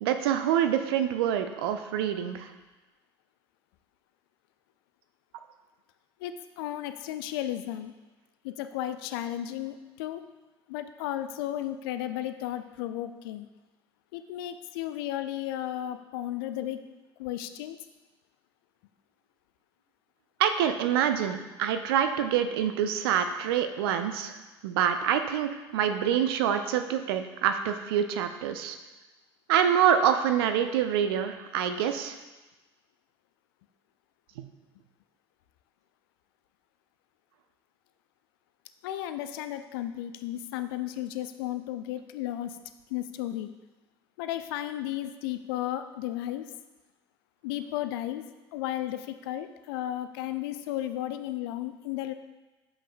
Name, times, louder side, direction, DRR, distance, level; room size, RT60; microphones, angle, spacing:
voice 1, 0.0-2.5 20.4-24.4 24.6-28.8 29.5-32.2 34.4-34.5, right 9 dB, 70° right, 8 dB, 0.5 m, -26 dB
voice 2, 6.2-7.9 8.4-10.2 10.7-13.5 14.1-16.8 17.2-17.8 38.8-42.6 42.9-43.5 44.2-46.5 47.4-52.1, left 13 dB, 65° left, 10 dB, 0.4 m, -34 dB
7.1 x 5.4 x 2.5 m, 1.2 s
figure-of-eight pair, 60°, 13 cm